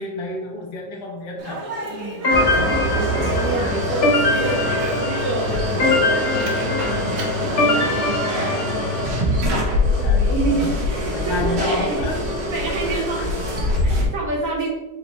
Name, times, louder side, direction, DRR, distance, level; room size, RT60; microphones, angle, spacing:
voice 1, 0.0-1.6 10.0-10.7 11.1-12.2 12.9-13.3 13.9-14.1, left 2 dB, 70° left, 0 dB, 1.4 m, -30 dB
Speech, 1.4-7.9, right 2 dB, 70° right, 1.5 m, -31 dB
voice 2, 1.9-2.2 2.6-8.9 9.2-12.1 12.5-14.7, right 2 dB, 55° right, -2 dB, 1.4 m, -29 dB
sound 1, 2.2-9.2, left 2 dB, 45° left, 1.0 m, -23 dB
sound 2, 2.3-14.1, left 1 dB, 90° right, 1.6 m, -23 dB
4.4 x 3.8 x 3.0 m, 1.1 s
omnidirectional pair, 1.8 m